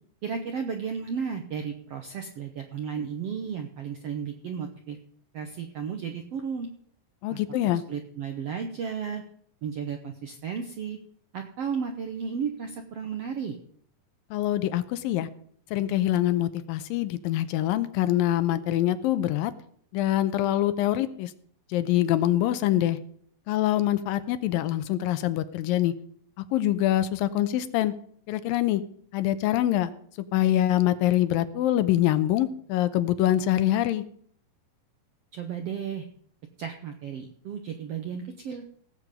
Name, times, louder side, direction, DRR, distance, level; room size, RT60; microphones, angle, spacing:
voice 1, 0.2-5.0 5.3-6.7 7.3-7.4 7.9-9.2 9.6-11.0 11.3-13.6 35.3-36.1 36.6-38.6, right 6 dB, 75° right, 5 dB, 1.4 m, -33 dB
voice 2, 7.2-7.8 14.3-15.3 15.7-19.5 19.9-21.3 21.7-23.0 23.5-25.9 26.5-27.9 28.3-28.8 29.1-29.9 30.3-34.0, left 13 dB, 80° left, 12 dB, 2.4 m, -24 dB
17.5 x 7.7 x 5.1 m, 0.62 s
omnidirectional pair, 4.1 m